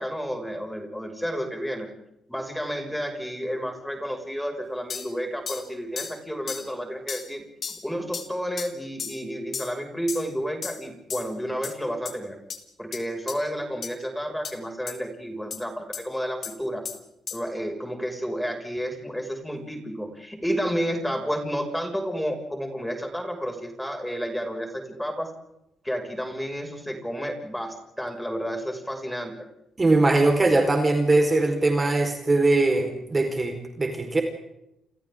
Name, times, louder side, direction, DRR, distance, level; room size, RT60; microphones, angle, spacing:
voice 1, 0.0-1.9 2.3-7.4 7.8-12.4 12.8-16.9 17.3-25.3 25.8-29.4, equal, 5° left, 3 dB, 6.1 m, -31 dB
sound 1, 4.9-5.1 5.5-5.7 6.0-6.2 6.5-6.7 7.1-7.3 7.6-7.8 8.1-8.3 8.6-8.7 9.0-9.2 9.5-9.7 10.1-10.3 10.6-10.8 11.1-11.3 11.6-11.7 12.1-12.2 12.5-12.6 12.9-13.0 13.3-13.4 13.8-13.9 14.4-14.5 14.9-15.0 15.5-15.6 15.9-16.0 16.4-16.5 16.8-17.0 17.3-17.4, left 6 dB, 50° left, 3.3 m, -34 dB
voice 2, 29.8-34.2, right 2 dB, 25° right, 4 dB, 4.5 m, -21 dB
29.0 x 28.5 x 3.8 m, 0.84 s
cardioid pair, 90°, 0 cm